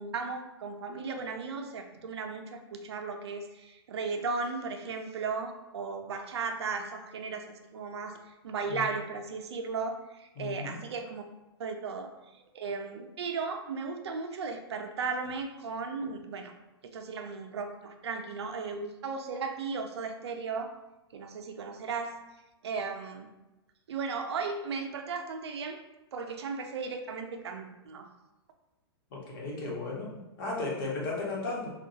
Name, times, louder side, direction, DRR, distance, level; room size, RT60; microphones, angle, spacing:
voice 1, 0.0-11.2 11.6-16.5 16.8-20.7 21.1-22.2 22.6-23.3 23.9-25.8 26.1-28.1, right 4 dB, 80° right, 5 dB, 0.6 m, -36 dB
voice 2, 10.4-10.8 29.1-31.7, left 3 dB, 55° left, -4 dB, 1.4 m, -35 dB
4.4 x 2.4 x 2.8 m, 1.0 s
hypercardioid pair, 140°, 14 cm